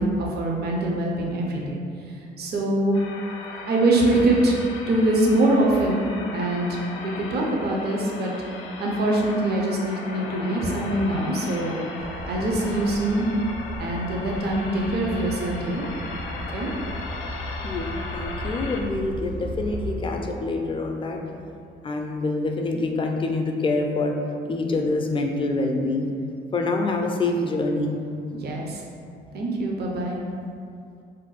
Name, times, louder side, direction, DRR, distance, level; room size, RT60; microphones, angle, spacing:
voice 1, 0.0-1.8 2.4-3.0 3.7-4.6 4.8-6.1 6.3-8.3 8.8-11.8 12.3-13.3 13.8-15.9 16.5-16.7 28.4-28.8 29.3-30.2, right 1 dB, 55° right, -2 dB, 0.5 m, -23 dB
sound 1, 2.9-18.8, left 2 dB, 85° left, 0.4 m, -37 dB
sound 2, 12.0-20.0, equal, 80° right, 1.2 m, -36 dB
voice 2, 18.1-21.4 21.8-24.2 24.5-26.1 26.5-27.9, left 2 dB, 25° left, 2 dB, 0.4 m, -26 dB
2.5 x 2.1 x 3.9 m, 2.4 s
cardioid pair, 90°, 20 cm